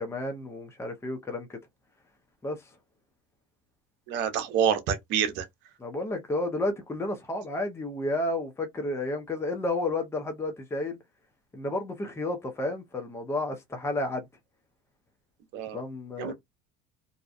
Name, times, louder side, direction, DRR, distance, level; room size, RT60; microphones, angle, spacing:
voice 1, 0.0-1.6 2.4-2.6 5.8-11.0 11.5-14.2 15.7-16.3, left 2 dB, 10° left, 0.7 m, -31 dB
voice 2, 4.1-5.5 15.5-15.8 16.2-16.3, right 8 dB, 60° right, 0.8 m, -27 dB
2.7 x 2.2 x 2.4 m
supercardioid pair, 100°, 21 cm